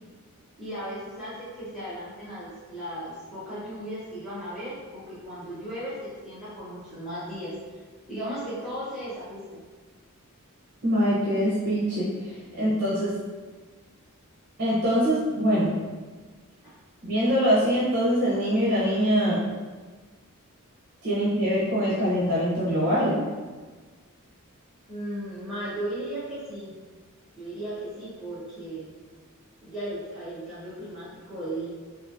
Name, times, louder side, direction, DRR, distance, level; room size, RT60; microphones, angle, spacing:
voice 1, 0.6-7.5 8.1-9.4 24.9-26.7 27.3-28.9 29.6-31.7, right 1 dB, ahead, -14 dB, 0.9 m, -36 dB
voice 2, 10.8-13.1 14.6-15.7 17.0-19.4 21.0-23.2, equal, 50° right, -8 dB, 0.9 m, -23 dB
3.8 x 2.5 x 2.6 m, 1.4 s
head